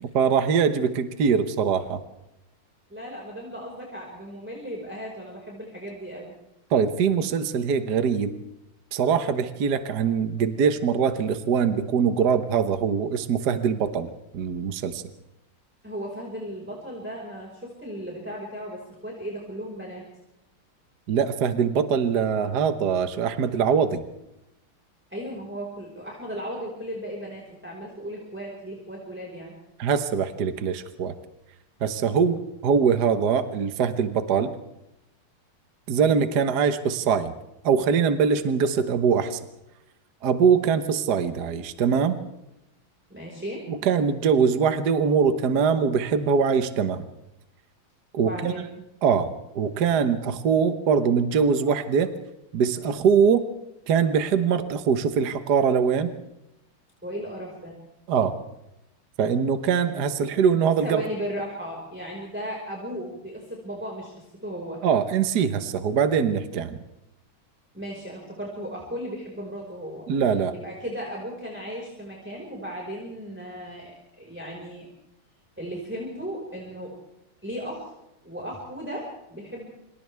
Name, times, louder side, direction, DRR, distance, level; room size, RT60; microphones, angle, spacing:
voice 1, 0.0-2.0 6.7-8.3 8.9-14.1 14.3-15.0 21.1-24.0 29.8-31.1 31.8-34.5 35.9-37.3 37.6-39.4 40.2-42.2 43.7-47.0 48.1-48.5 49.0-52.1 52.5-53.5 53.9-56.1 58.1-58.4 59.2-61.1 64.8-66.8 70.1-70.5, right 6 dB, 55° right, 9 dB, 1.6 m, -22 dB
voice 2, 2.9-6.3 15.8-20.0 25.1-29.5 43.1-43.6 48.2-48.7 57.0-57.8 60.8-64.1 64.4-64.8 67.7-70.1 70.5-74.9 75.6-77.0 77.4-77.9 78.2-79.7, equal, 5° right, -2 dB, 5.0 m, -36 dB
28.0 x 26.5 x 3.5 m, 0.88 s
omnidirectional pair, 2.3 m